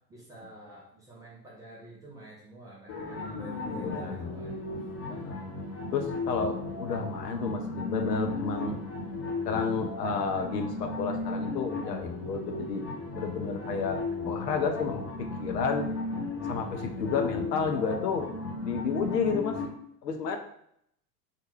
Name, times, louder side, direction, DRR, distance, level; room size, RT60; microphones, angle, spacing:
voice 1, 0.1-4.6 5.1-5.6, equal, 10° right, -7 dB, 0.3 m, -48 dB
sound 1, 2.9-19.7, left 2 dB, 30° left, 0.9 m, -35 dB
voice 2, 3.7-4.1 5.1-5.4 5.9-8.8 9.5-12.8 13.2-15.9 16.5-19.6 20.0-20.4, left 5 dB, 80° left, 5 dB, 0.6 m, -31 dB
2.3 x 2.1 x 3.1 m, 0.71 s
figure-of-eight pair, 75°, 48 cm